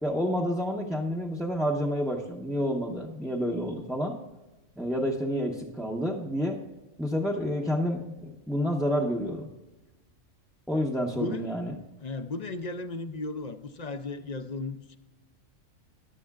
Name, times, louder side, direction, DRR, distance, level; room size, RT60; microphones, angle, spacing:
voice 1, 0.0-4.2 4.8-6.6 7.0-9.5 10.7-11.7, equal, ahead, -3 dB, 0.7 m, -29 dB
voice 2, 11.1-11.5 12.0-15.0, left 3 dB, 45° left, 9 dB, 0.6 m, -35 dB
14.0 x 11.5 x 2.4 m, 1.1 s
omnidirectional pair, 1.3 m